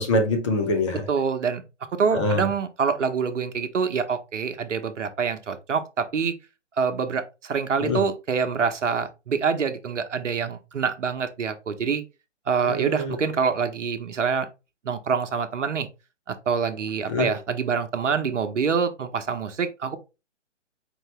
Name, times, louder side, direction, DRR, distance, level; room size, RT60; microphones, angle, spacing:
voice 1, 0.0-1.0 2.1-2.5 7.8-8.0 12.6-13.1 17.1-17.3, left 2 dB, 25° left, 0.7 m, -24 dB
voice 2, 1.1-1.6 2.0-6.3 6.8-12.0 12.5-14.5 14.8-15.9 16.3-20.0, right 6 dB, 75° right, 0.9 m, -26 dB
4.6 x 2.7 x 3.2 m
hypercardioid pair, 150°, 37 cm